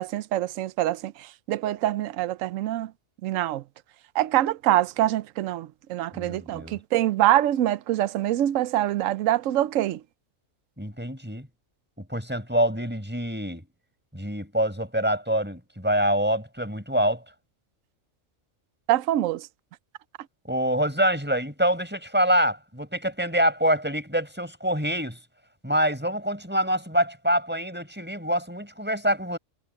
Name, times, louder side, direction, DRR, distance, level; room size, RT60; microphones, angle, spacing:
voice 1, 0.0-2.9 3.2-3.6 4.1-10.0 18.9-19.5, right 13 dB, 80° right, 1.0 m, -25 dB
voice 2, 6.1-6.8 10.8-11.5 12.1-13.6 14.1-17.2 20.5-25.2 25.6-29.4, equal, 5° right, 4.7 m, -25 dB
omnidirectional pair, 1.4 m